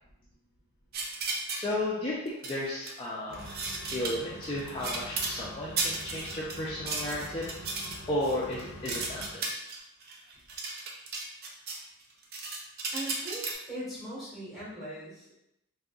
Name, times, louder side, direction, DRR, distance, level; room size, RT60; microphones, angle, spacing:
sound 1, 0.9-1.7 2.3-3.0 3.3-5.4 5.8-11.8 12.1-13.5, right 3 dB, 45° right, 0.4 m, -35 dB
voice 1, 1.5-3.4 3.9-7.5 8.1-9.6, left 1 dB, 25° left, -7 dB, 0.4 m, -33 dB
sound 2, 3.3-9.3, equal, 80° left, 0.6 m, -45 dB
voice 2, 12.9-15.4, right 1 dB, ahead, -9 dB, 1.3 m, -40 dB
3.7 x 2.7 x 2.3 m, 0.82 s
head